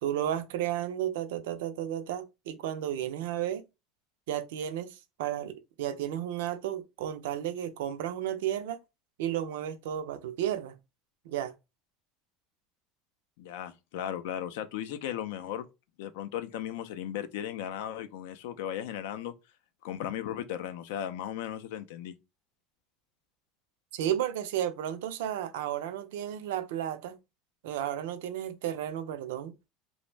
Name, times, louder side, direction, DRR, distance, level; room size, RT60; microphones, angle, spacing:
voice 1, 0.0-3.6 4.3-8.8 9.2-10.8 11.3-11.5 23.9-27.2 27.6-29.6, right 11 dB, 90° right, 0.4 m, -33 dB
voice 2, 13.4-15.7 16.0-19.3 19.8-22.1, left 10 dB, 80° left, 0.4 m, -36 dB
2.5 x 2.0 x 3.1 m
supercardioid pair, 135°, 0 cm